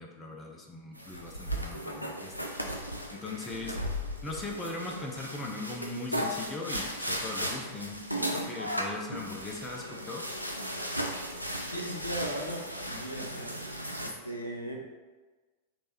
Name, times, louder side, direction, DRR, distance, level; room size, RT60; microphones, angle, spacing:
voice 1, 0.0-2.5 3.1-10.4, left 3 dB, 15° left, 0 dB, 0.7 m, -40 dB
sound 1, 0.9-14.1, equal, 90° right, 0.5 m, -36 dB
voice 2, 11.7-13.5 14.0-14.8, right 1 dB, 85° left, -1 dB, 0.7 m, -37 dB
3.3 x 3.3 x 4.2 m, 1.3 s
figure-of-eight pair, 90°, 0 cm